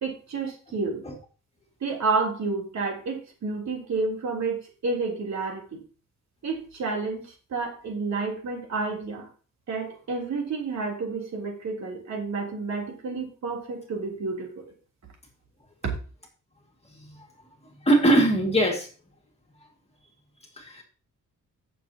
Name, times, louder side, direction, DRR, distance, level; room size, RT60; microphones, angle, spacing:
voice 1, 0.0-1.0 1.8-5.8 6.4-9.3 9.7-14.6, right 4 dB, 60° right, 0 dB, 3.4 m, -30 dB
voice 2, 17.9-18.9 20.6-20.8, right 1 dB, 20° left, 1 dB, 2.2 m, -20 dB
16.0 x 7.0 x 2.9 m, 0.37 s
wide cardioid pair, 170°, 32 cm